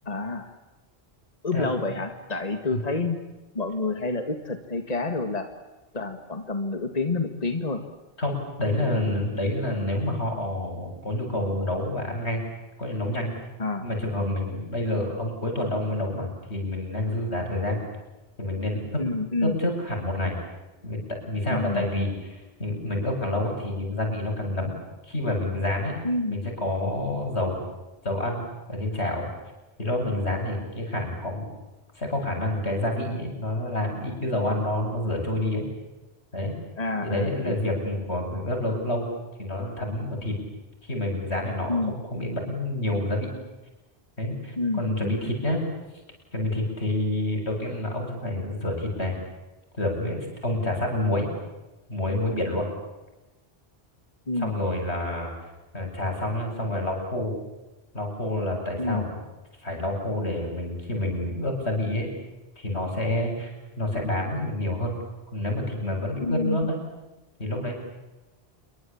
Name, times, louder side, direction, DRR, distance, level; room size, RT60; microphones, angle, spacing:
voice 1, 0.1-0.5 1.4-3.2 3.5-5.5 5.9-7.8 13.6-13.9 19.0-19.6 21.5-21.9 26.0-26.4 36.8-37.6 41.7-42.0 44.6-45.1 54.3-54.5 58.8-59.1 66.2-66.7, left 3 dB, 40° left, 7 dB, 2.1 m, -28 dB
voice 2, 8.2-12.4 12.8-13.3 13.8-17.8 18.4-19.0 19.4-20.4 20.8-24.7 25.1-26.0 26.3-27.6 28.0-29.3 29.8-31.4 31.9-35.7 36.3-36.5 37.0-39.1 39.4-40.4 40.8-43.3 44.2-45.7 46.3-49.2 49.7-51.3 51.9-52.7 54.4-55.3 55.7-57.3 57.9-59.1 59.6-62.1 62.6-65.0 65.3-66.8 67.4-67.7, left 1 dB, 85° left, 2 dB, 8.5 m, -28 dB
28.0 x 23.5 x 8.8 m, 1.1 s
omnidirectional pair, 1.1 m